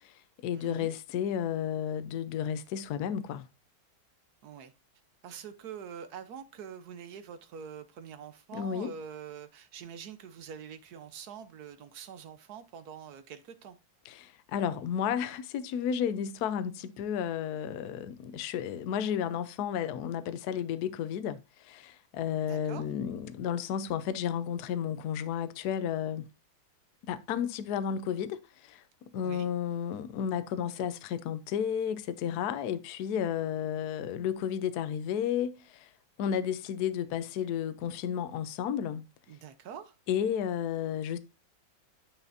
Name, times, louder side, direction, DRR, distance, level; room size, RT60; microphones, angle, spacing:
voice 1, 0.0-3.5 8.5-8.9 14.0-26.3 27.1-28.8 29.1-35.9 36.2-39.1 40.1-41.2, left 8 dB, 65° left, 1.0 m, -32 dB
voice 2, 0.5-0.9 4.4-4.7 5.2-13.8 22.5-22.8 29.2-29.5 39.3-40.0, right 7 dB, 60° right, 1.2 m, -45 dB
8.9 x 5.8 x 2.6 m
omnidirectional pair, 2.1 m